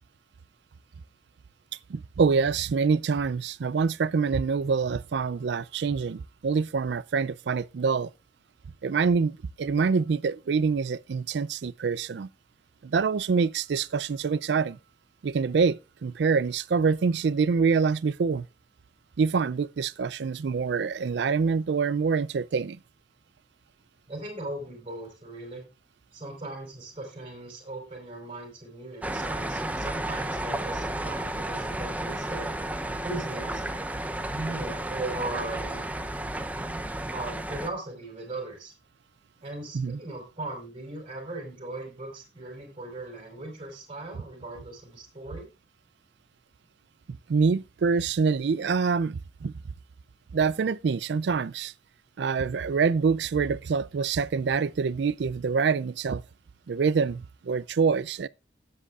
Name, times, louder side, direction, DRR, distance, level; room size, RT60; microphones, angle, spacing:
voice 1, 1.9-8.1 8.8-12.3 12.8-14.8 15.2-18.5 19.2-22.8 39.7-40.0 47.1-49.5 50.3-51.7 52.2-56.2 56.7-58.3, right 5 dB, 70° right, 0.4 m, -26 dB
voice 2, 24.1-25.6 26.1-32.5 32.9-33.8 34.3-35.8 37.1-38.7 39.4-45.5, right 2 dB, 30° right, 4.5 m, -38 dB
sound 1, 29.0-37.7, right 1 dB, 10° right, 0.6 m, -32 dB
16.5 x 7.7 x 2.4 m
head